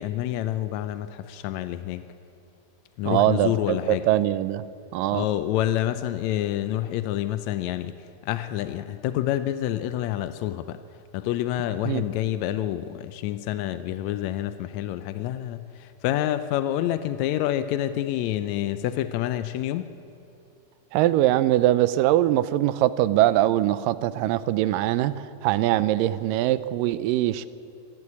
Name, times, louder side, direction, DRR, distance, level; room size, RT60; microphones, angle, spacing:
voice 1, 0.0-2.1 3.0-4.1 5.1-7.9 8.2-10.8 11.1-19.9, left 12 dB, 80° left, 11 dB, 1.6 m, -28 dB
voice 2, 3.1-4.6 4.9-5.2 11.9-12.0 20.9-25.1 25.4-27.5, right 14 dB, 85° right, 15 dB, 2.3 m, -22 dB
25.5 x 12.0 x 8.6 m, 2.7 s
omnidirectional pair, 3.9 m